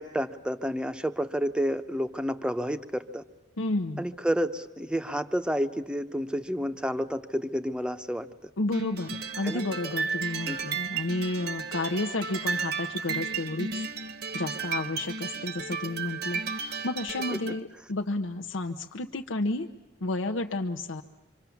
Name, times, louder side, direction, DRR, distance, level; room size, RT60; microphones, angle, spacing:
voice 1, 0.0-3.2 4.0-8.3 9.4-9.6 10.5-10.6 17.3-17.4, equal, 5° right, 9 dB, 0.8 m, -30 dB
voice 2, 3.6-4.0 8.6-13.8 14.3-19.7 20.0-21.0, left 2 dB, 90° left, 4 dB, 0.9 m, -31 dB
sound 1, 8.7-17.6, right 5 dB, 55° right, 1.1 m, -33 dB
26.5 x 25.0 x 7.1 m, 1.1 s
head